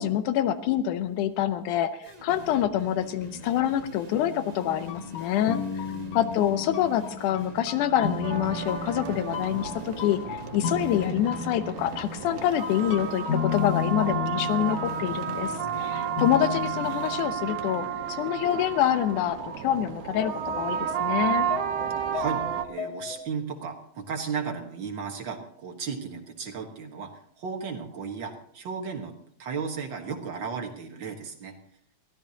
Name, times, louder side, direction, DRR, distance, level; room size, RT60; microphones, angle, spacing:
voice 1, 0.0-5.6 6.1-21.5, left 11 dB, 85° left, 11 dB, 2.2 m, -26 dB
sound 1, 2.0-17.2, right 1 dB, 20° right, 1.1 m, -44 dB
sound 2, 4.6-17.7 18.0-18.1 19.6-19.7 19.9-23.2, left 7 dB, 65° left, 2.3 m, -35 dB
sound 3, 8.2-22.7, right 9 dB, 85° right, 2.4 m, -32 dB
voice 2, 22.1-31.5, right 5 dB, 50° right, 2 dB, 1.7 m, -35 dB
22.5 x 15.5 x 2.8 m, 0.66 s
omnidirectional pair, 3.5 m